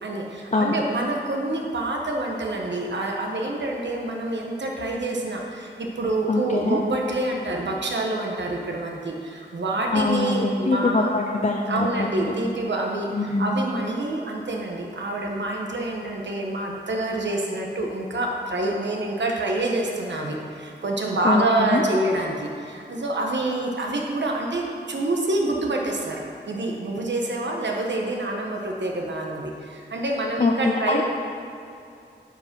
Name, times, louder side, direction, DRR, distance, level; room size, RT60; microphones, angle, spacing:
voice 1, 0.0-11.1 11.7-31.0, right 2 dB, 75° right, 0 dB, 1.2 m, -27 dB
voice 2, 6.3-6.8 9.9-12.3 13.1-13.5 21.2-21.8 30.4-31.0, left 3 dB, 40° left, 0 dB, 0.6 m, -23 dB
10.5 x 5.0 x 6.1 m, 2.6 s
wide cardioid pair, 70°, 19 cm